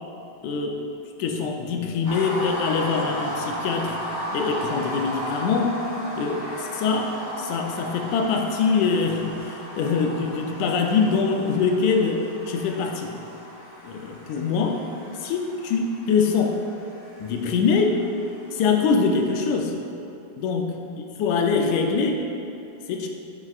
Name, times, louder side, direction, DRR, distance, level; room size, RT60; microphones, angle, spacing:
voice 1, 0.4-0.8 1.2-4.0 4.3-5.8 6.2-13.2 13.8-14.8 15.1-16.6 17.2-18.0 18.5-19.7 20.4-20.7 21.2-22.3 22.9-23.1, left 5 dB, 90° left, 2 dB, 2.1 m, -24 dB
sound 1, 2.1-19.3, equal, 35° left, 2.1 m, -35 dB
13.5 x 6.1 x 2.4 m, 2.8 s
omnidirectional pair, 3.3 m